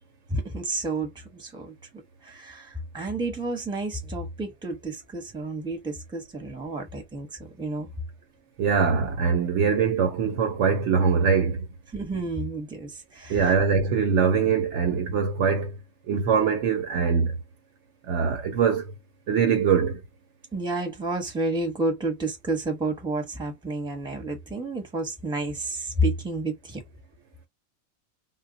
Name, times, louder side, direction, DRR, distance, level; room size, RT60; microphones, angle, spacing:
voice 1, 0.3-1.7 2.2-7.3 7.6-7.9 11.9-13.4 20.5-26.8, right 2 dB, 5° right, 0.8 m, -30 dB
voice 2, 8.6-11.7 13.3-15.8 16.1-17.4 18.0-18.9 19.3-20.0, right 6 dB, 65° right, 0.8 m, -23 dB
2.3 x 2.1 x 3.9 m
omnidirectional pair, 1.4 m